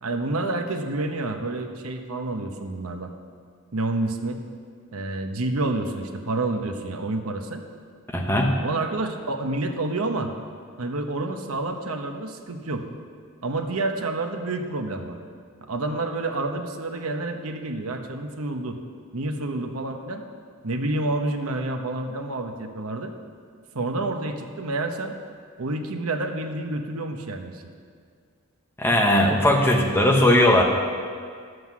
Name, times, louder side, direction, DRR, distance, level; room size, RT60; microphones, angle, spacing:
voice 1, 0.0-3.1 3.7-4.4 4.9-7.6 8.6-10.3 10.8-12.9 13.4-15.2 15.6-18.8 19.1-20.2 20.6-23.1 23.7-25.2 25.6-27.7, right 2 dB, 85° right, 5 dB, 0.9 m, -29 dB
voice 2, 8.1-8.5 28.8-30.6, left 1 dB, 10° left, 0 dB, 1.0 m, -18 dB
11.0 x 7.8 x 6.0 m, 2.1 s
head